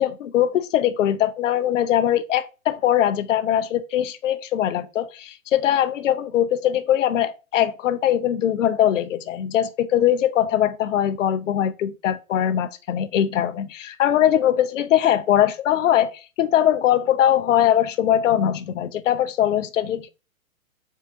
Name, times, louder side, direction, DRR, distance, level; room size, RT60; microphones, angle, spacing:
voice 1, 0.0-20.1, left 11 dB, 65° left, 0.5 m, -21 dB
4.1 x 3.6 x 2.5 m
figure-of-eight pair, 115°, 41 cm